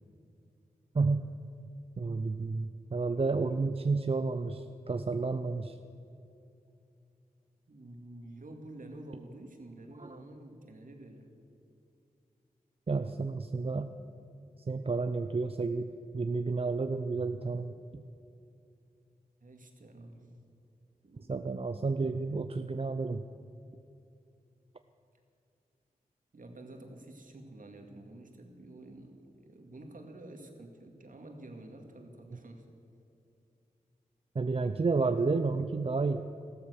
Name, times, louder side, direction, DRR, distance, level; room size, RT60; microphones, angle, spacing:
voice 1, 0.9-1.3 2.0-5.8 10.0-10.2 12.9-13.9 14.7-18.0 21.3-23.2 34.3-36.2, right 4 dB, 40° right, 8 dB, 0.6 m, -31 dB
voice 2, 7.7-11.3 19.4-20.4 21.0-21.3 26.3-32.6, right 1 dB, 60° right, 3 dB, 2.2 m, -49 dB
14.0 x 13.0 x 6.5 m, 2.7 s
cardioid pair, 45°, 16 cm